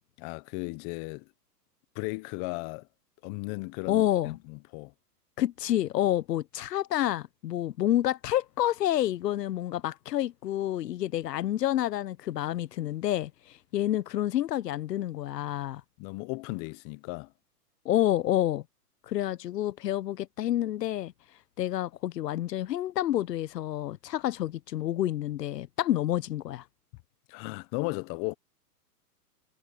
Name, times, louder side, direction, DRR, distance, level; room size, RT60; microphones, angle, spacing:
voice 1, 0.2-1.3 1.9-2.9 3.2-4.9 16.0-17.3 27.3-28.3, left 25 dB, 30° left, 0.9 m, -36 dB
voice 2, 3.9-4.4 5.4-15.8 17.8-18.6 19.1-21.1 21.6-26.6, left 13 dB, 80° left, 0.9 m, -29 dB
hypercardioid pair, 135°, 48 cm